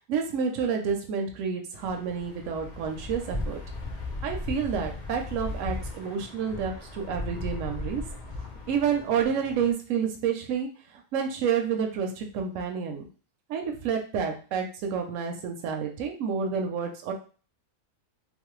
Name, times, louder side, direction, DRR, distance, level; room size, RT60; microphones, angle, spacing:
voice 1, 0.1-3.6 4.2-8.0 8.7-13.0 13.5-17.1, right 6 dB, 75° right, 3 dB, 0.9 m, -29 dB
sound 1, 1.7-9.7, left 2 dB, 60° left, 0.5 m, -37 dB
3.1 x 2.0 x 3.0 m, 0.38 s
omnidirectional pair, 1.4 m